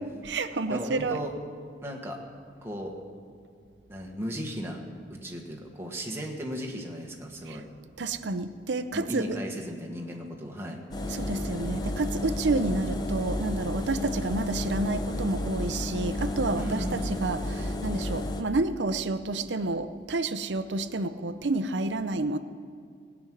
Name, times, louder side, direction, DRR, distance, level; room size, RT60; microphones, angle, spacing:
voice 1, 0.0-1.2 7.4-7.6 8.0-9.4 11.1-22.4, right 2 dB, 85° right, 11 dB, 0.7 m, -30 dB
voice 2, 0.7-1.3 1.8-2.2 2.6-2.9 3.9-4.8 5.1-7.6 8.9-10.8 16.6-17.0, equal, 15° right, 0 dB, 1.5 m, -35 dB
Engine, 10.9-18.4, left 1 dB, 25° left, 0.9 m, -32 dB
17.0 x 6.2 x 9.3 m, 2.2 s
head